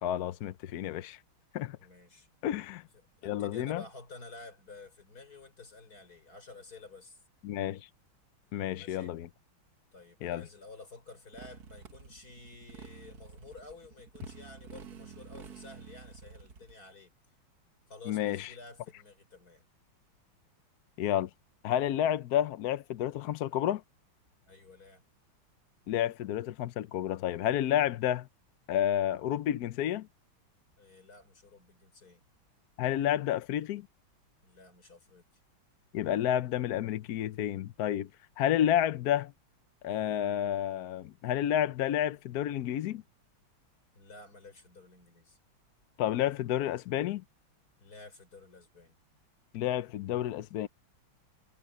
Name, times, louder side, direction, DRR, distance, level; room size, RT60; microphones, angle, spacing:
voice 1, 0.0-1.2 1.5-1.8 2.4-2.8 3.2-3.8 7.4-7.9 8.5-9.3 10.2-10.5 18.1-18.5 21.0-21.3 21.6-23.8 25.9-28.3 28.7-30.1 32.8-33.9 35.9-38.1 38.4-39.3 39.8-43.0 46.0-47.2 49.5-50.7, left 11 dB, 70° left, 0.9 m, -30 dB
voice 2, 1.8-2.3 3.2-7.2 8.7-9.1 9.9-17.1 17.9-19.6 24.5-25.0 30.8-32.2 34.4-35.2 43.9-45.4 47.8-49.0, left 3 dB, 45° left, 5.1 m, -51 dB
Motorcycle, 11.3-16.7, right 6 dB, 50° right, 1.8 m, -50 dB
omnidirectional pair, 2.2 m